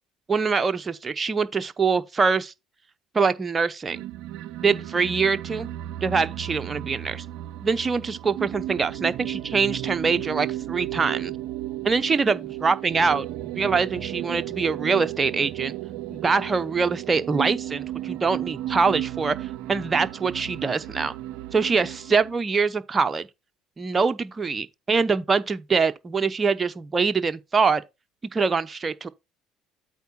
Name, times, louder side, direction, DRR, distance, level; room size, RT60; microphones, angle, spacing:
voice 1, 0.3-2.5 3.1-4.0 4.6-5.7 6.0-7.2 7.6-11.3 11.8-15.7 16.1-19.4 19.7-21.1 21.5-23.3 23.8-27.8 28.3-29.1, right 5 dB, 30° right, 0.8 m, -24 dB
sound 1, 3.9-22.5, right 14 dB, 70° right, 0.4 m, -34 dB
8.2 x 4.6 x 4.3 m
hypercardioid pair, 60°, 0 cm